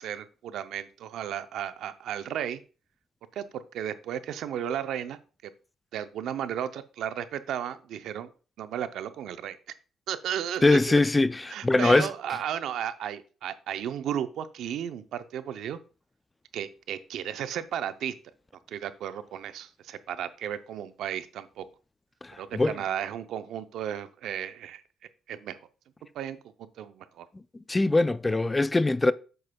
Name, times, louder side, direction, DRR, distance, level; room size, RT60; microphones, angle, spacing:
voice 1, 0.0-2.6 3.3-5.5 5.9-8.3 8.6-9.6 10.1-11.0 11.5-15.8 16.5-18.1 18.7-21.7 22.4-24.8 25.3-25.6 26.1-27.3, right 10 dB, 75° right, 0.6 m, -34 dB
voice 2, 10.6-12.1 22.2-22.8 27.7-29.1, left 2 dB, 20° left, 0.3 m, -22 dB
7.8 x 7.7 x 2.3 m
cardioid pair, 80°, 0 cm